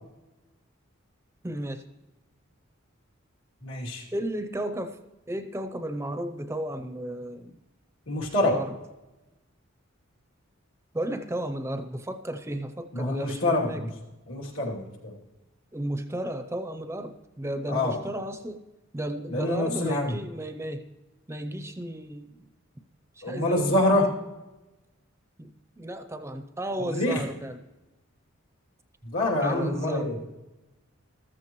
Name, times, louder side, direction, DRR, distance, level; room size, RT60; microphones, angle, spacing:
voice 1, 1.4-1.9 4.1-5.0 5.3-7.6 8.4-8.8 10.9-13.8 15.7-18.6 18.9-20.9 21.3-22.5 23.2-23.8 25.4-27.6 29.4-30.2, right 1 dB, 15° right, 8 dB, 0.5 m, -34 dB
voice 2, 3.6-4.0 8.1-8.6 12.9-13.9 14.3-15.2 17.7-18.0 19.3-20.1 23.2-24.1 26.8-27.2 29.0-30.2, left 1 dB, 85° left, -3 dB, 2.8 m, -26 dB
14.0 x 14.0 x 3.0 m, 1.1 s
head